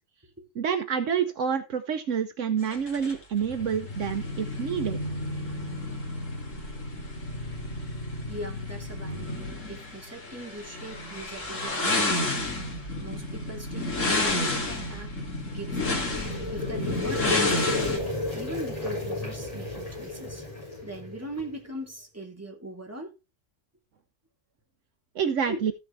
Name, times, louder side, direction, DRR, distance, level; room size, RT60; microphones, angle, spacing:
voice 1, 0.6-5.0 25.1-25.7, right 7 dB, 70° right, 1.2 m, -28 dB
sound 1, 2.6-18.0, left 2 dB, 70° left, 2.9 m, -31 dB
voice 2, 8.3-15.1 15.5-18.0 18.3-20.4 20.8-23.2 25.5-25.6, right 1 dB, 10° right, 2.5 m, -40 dB
sound 2, 15.5-21.6, left 2 dB, 30° left, 7.1 m, -33 dB
14.0 x 7.0 x 3.3 m
omnidirectional pair, 1.4 m